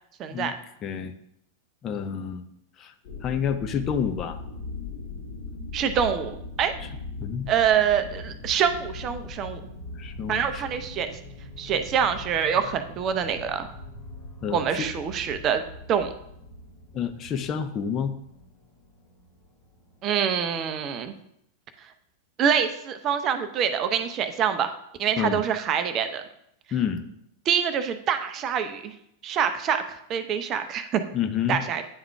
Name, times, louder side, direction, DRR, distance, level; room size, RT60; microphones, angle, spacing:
voice 1, 0.2-0.6 5.7-6.7 7.5-9.6 10.3-11.2 11.6-13.7 14.5-15.6 15.9-16.1 20.0-21.1 22.4-24.7 25.0-26.2 27.5-28.9 29.2-31.0 31.5-31.8, right 8 dB, 35° right, 9 dB, 0.5 m, -25 dB
voice 2, 0.8-1.1 1.8-2.4 2.8-2.9 3.2-4.4 6.8-6.9 7.2-7.5 10.0-10.6 14.4-14.9 16.9-18.1 25.2-25.4 26.7-27.0 31.1-31.6, left 7 dB, 30° left, 7 dB, 0.5 m, -29 dB
sound 1, 3.0-20.4 20.8-20.9, left 3 dB, 50° left, 2.0 m, -40 dB
9.7 x 3.6 x 3.4 m, 0.75 s
figure-of-eight pair, 90°, 0 cm